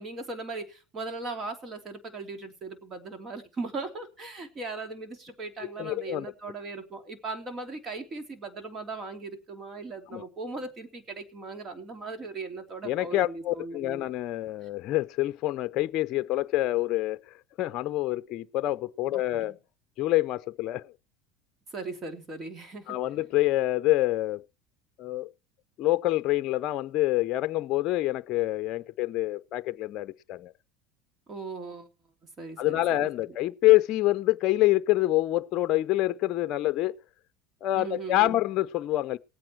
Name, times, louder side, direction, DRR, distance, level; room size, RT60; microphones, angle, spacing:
voice 1, 0.0-14.0 19.1-19.6 21.7-23.0 31.3-31.9 32.4-33.1 37.7-38.4, right 3 dB, 35° right, 3.2 m, -38 dB
voice 2, 5.8-6.3 10.1-10.2 12.8-19.5 20.0-20.9 22.9-24.4 25.0-25.3 25.8-30.5 32.6-37.0 37.6-39.2, left 16 dB, 50° left, 0.6 m, -26 dB
18.5 x 8.8 x 4.6 m
supercardioid pair, 105°, 0 cm